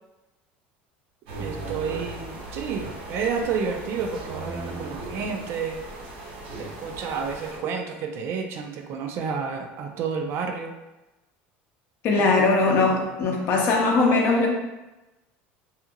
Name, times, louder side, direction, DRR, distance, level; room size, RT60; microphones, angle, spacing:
sound 1, 1.3-7.6, right 2 dB, 80° right, 0.8 m, -37 dB
voice 1, 1.4-5.9 6.6-10.8 12.1-12.3, right 5 dB, 50° right, 5 dB, 0.3 m, -30 dB
voice 2, 12.0-14.5, left 3 dB, 50° left, 0 dB, 0.6 m, -20 dB
2.8 x 2.6 x 2.4 m, 1.0 s
cardioid pair, 135°, 5 cm